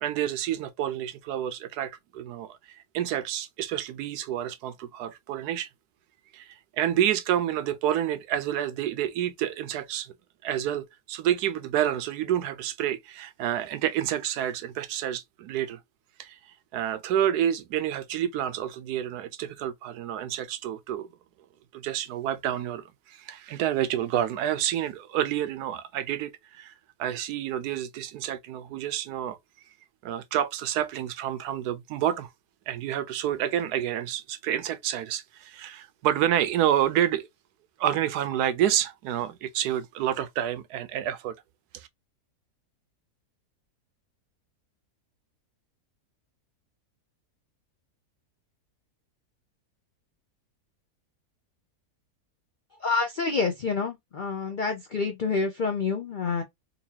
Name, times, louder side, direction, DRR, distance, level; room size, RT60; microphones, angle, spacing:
voice 1, 0.0-5.7 6.3-10.1 10.4-15.8 16.2-16.4 16.7-21.1 21.7-26.7 27.0-29.4 30.0-32.3 32.7-37.3 37.8-41.3 41.7-41.9, right 11 dB, 85° right, 1.1 m, -29 dB
voice 2, 52.8-56.4, left 4 dB, 70° left, 0.4 m, -28 dB
4.0 x 2.7 x 2.7 m
omnidirectional pair, 1.6 m